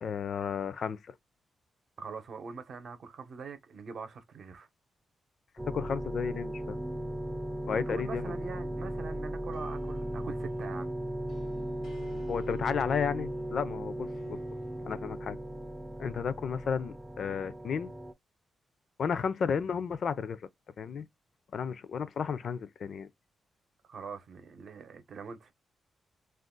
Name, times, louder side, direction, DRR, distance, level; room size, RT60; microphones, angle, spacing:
voice 1, 0.0-1.1 5.7-6.8 7.7-8.3 12.3-14.4 14.8-15.4 16.0-17.9 19.0-20.4 20.8-21.1 21.5-23.1, left 6 dB, 60° left, 0.4 m, -33 dB
voice 2, 2.0-4.7 7.7-10.9 23.9-25.5, right 5 dB, 60° right, 0.7 m, -43 dB
sound 1, 5.6-18.1, right 1 dB, 15° right, 0.4 m, -37 dB
sound 2, 8.3-16.3, left 4 dB, 90° left, 0.7 m, -58 dB
2.4 x 2.2 x 3.7 m
cardioid pair, 115°, 0 cm